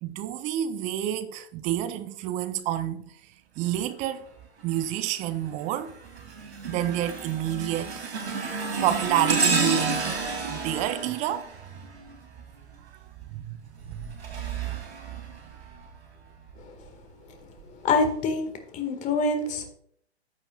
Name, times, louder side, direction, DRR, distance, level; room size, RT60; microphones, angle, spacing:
voice 1, 0.0-3.0 3.6-4.2 4.6-5.9 6.7-7.9 8.8-11.5 13.3-13.6 13.9-14.1, right 11 dB, 20° right, 0.6 m, -29 dB
sound 1, 4.7-5.1 5.6-12.4 13.7-15.9 16.5-16.7 17.6-17.7, right 4 dB, 70° right, 2.9 m, -31 dB
voice 2, 17.8-19.7, left 3 dB, 20° left, 1.8 m, -26 dB
14.0 x 8.6 x 2.4 m
figure-of-eight pair, 120°, 33 cm